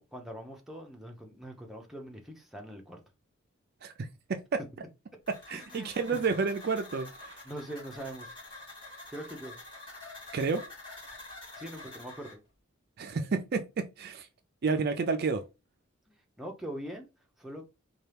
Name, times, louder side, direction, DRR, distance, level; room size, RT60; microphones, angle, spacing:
voice 1, 0.0-3.0 5.5-6.2 7.4-8.3 9.1-9.6 11.6-12.4 16.1-17.1 17.4-17.6, right 1 dB, ahead, 0.6 m, -42 dB
voice 2, 3.8-4.6 5.3-7.4 10.3-10.6 13.0-14.3 14.6-15.4, right 4 dB, 50° right, 0.4 m, -30 dB
sound 1, 5.3-12.3, left 2 dB, 25° left, 2.4 m, -47 dB
4.3 x 2.3 x 3.3 m
head